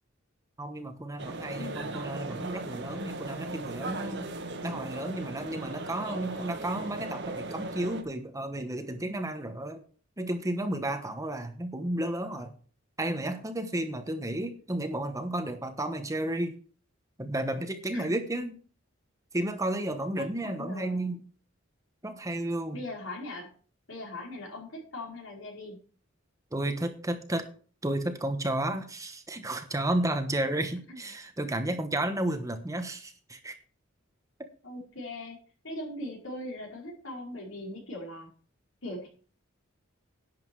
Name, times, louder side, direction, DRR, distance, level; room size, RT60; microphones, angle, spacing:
voice 1, 0.6-4.3 4.6-9.8 10.2-12.5 13.0-16.6 17.2-18.6 19.3-21.2 22.0-22.8 26.5-27.5 27.8-33.6 34.4-34.5, right 1 dB, 15° right, 8 dB, 1.1 m, -32 dB
sound 1, 1.2-8.0, right 2 dB, 60° right, 1.5 m, -38 dB
voice 2, 1.6-1.9 17.9-18.1 20.2-21.2 22.7-23.5 23.9-25.8 30.9-31.0 34.6-38.3 38.8-39.1, left 1 dB, 70° left, -1 dB, 5.1 m, -40 dB
11.0 x 8.0 x 4.7 m, 0.40 s
head